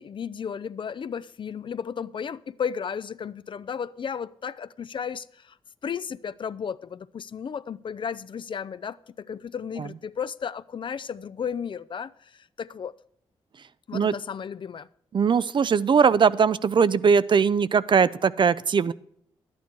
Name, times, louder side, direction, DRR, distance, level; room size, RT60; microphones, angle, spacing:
voice 1, 0.0-5.6 5.8-12.9 13.9-14.9, left 7 dB, 50° left, 0.4 m, -34 dB
voice 2, 15.1-18.9, right 6 dB, 45° right, 0.4 m, -20 dB
11.0 x 9.6 x 4.6 m
cardioid pair, 55°, 11 cm